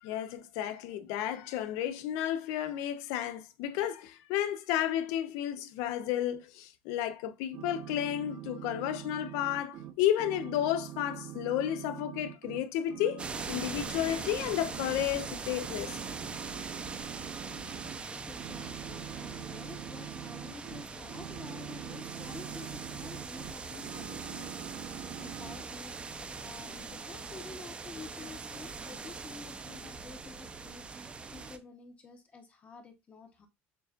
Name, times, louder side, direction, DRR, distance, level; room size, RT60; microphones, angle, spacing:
voice 1, 0.0-16.0, left 11 dB, 75° left, 0.5 m, -32 dB
sound 1, 7.5-12.6 12.9-15.3 15.6-18.0 18.4-23.5 23.8-25.6, right 11 dB, 55° right, 0.7 m, -44 dB
sound 2, 13.2-31.6, right 4 dB, 20° right, 0.5 m, -42 dB
voice 2, 18.3-33.5, left 4 dB, 25° left, 0.8 m, -50 dB
6.7 x 2.5 x 2.4 m
cardioid pair, 135°, 6 cm